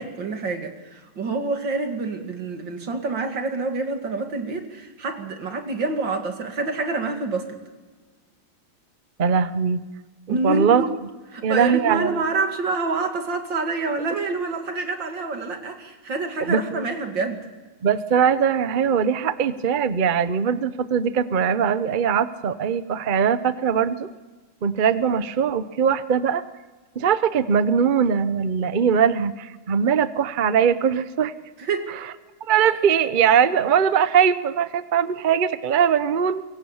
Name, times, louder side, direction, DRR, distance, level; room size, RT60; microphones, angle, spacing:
voice 1, 0.0-7.6 10.3-10.9 11.3-17.4 31.6-31.9, right 3 dB, 60° right, 5 dB, 3.0 m, -27 dB
voice 2, 9.2-9.8 10.3-10.8 11.4-12.1 16.5-16.9 17.8-24.1 24.6-26.4 27.0-31.3 32.5-36.4, right 7 dB, 85° right, 13 dB, 0.4 m, -21 dB
25.5 x 23.0 x 7.2 m, 1.4 s
omnidirectional pair, 2.3 m